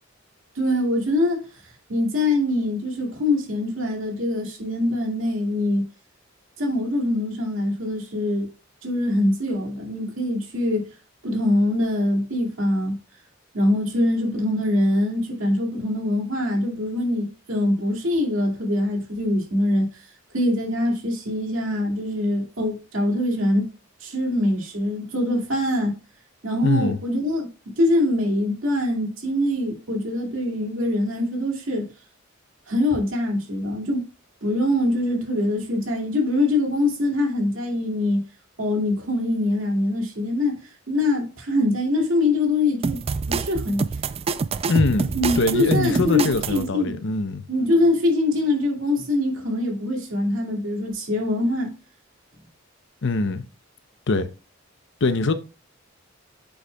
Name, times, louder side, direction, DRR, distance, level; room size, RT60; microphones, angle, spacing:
voice 1, 0.6-1.5 1.9-5.8 6.6-8.5 8.8-10.9 11.2-13.0 13.5-19.9 20.3-23.7 24.0-25.9 26.4-27.5 27.8-31.9 32.7-34.1 34.4-38.2 38.6-40.6 40.9-43.0 43.3-44.0 45.1-47.0 47.5-51.7, left 1 dB, 80° right, 2.3 m, -23 dB
voice 2, 26.6-27.0 44.7-45.1 45.3-47.4 53.0-53.4 54.1-54.3 55.0-55.3, left 3 dB, 65° left, 0.7 m, -22 dB
sound 1, 42.8-46.6, right 4 dB, 30° right, 0.3 m, -26 dB
8.0 x 6.5 x 2.3 m
head